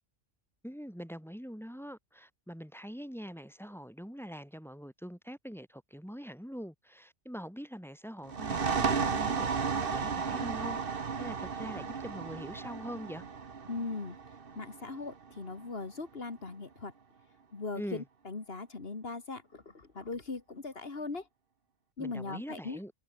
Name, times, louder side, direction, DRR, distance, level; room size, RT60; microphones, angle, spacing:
voice 1, 0.6-13.2 17.8-18.0 22.0-22.9, equal, ahead, 6.9 m, -43 dB
sound 1, 8.2-15.6, right 5 dB, 50° right, 1.5 m, -34 dB
voice 2, 13.7-14.2 14.5-16.9 17.5-21.3 22.0-22.8, left 3 dB, 55° left, 2.3 m, -39 dB
omnidirectional pair, 1.2 m